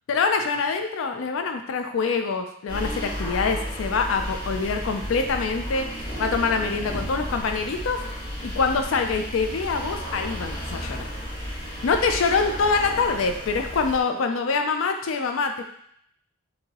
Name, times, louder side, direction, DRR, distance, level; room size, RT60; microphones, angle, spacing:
voice 1, 0.1-8.0 8.4-11.1 11.8-15.6, left 4 dB, 75° left, 5 dB, 0.4 m, -25 dB
sound 1, 2.7-14.0, equal, 20° left, 1.2 m, -33 dB
6.6 x 2.7 x 2.9 m, 0.70 s
head